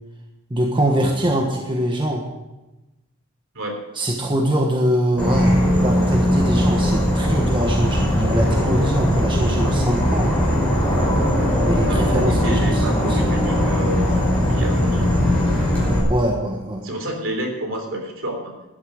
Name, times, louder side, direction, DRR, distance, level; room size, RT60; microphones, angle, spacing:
voice 1, 0.5-2.2 3.9-10.3 11.6-13.2 16.1-16.8, right 1 dB, 20° right, 1 dB, 1.4 m, -23 dB
Insect / Frog, 5.2-16.0, equal, 5° left, 5.2 m, -19 dB
voice 2, 8.4-8.9 9.6-9.8 11.8-15.2 16.8-18.6, right 1 dB, 60° right, 3 dB, 3.4 m, -30 dB
13.0 x 10.5 x 6.5 m, 1.0 s
head